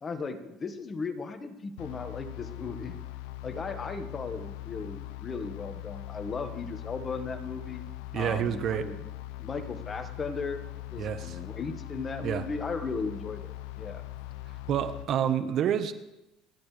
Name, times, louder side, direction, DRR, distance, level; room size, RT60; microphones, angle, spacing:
voice 1, 0.0-3.0 3.4-7.8 8.1-9.1 9.4-10.6 10.9-14.0, left 4 dB, 30° left, 7 dB, 1.6 m, -36 dB
sound 1, 1.8-15.1, left 16 dB, 85° left, 0.6 m, -41 dB
voice 2, 8.1-8.9 11.0-11.4 12.2-12.4 14.7-15.9, right 9 dB, 55° right, 10 dB, 1.2 m, -28 dB
29.0 x 11.5 x 3.4 m, 0.96 s
supercardioid pair, 100°, 0 cm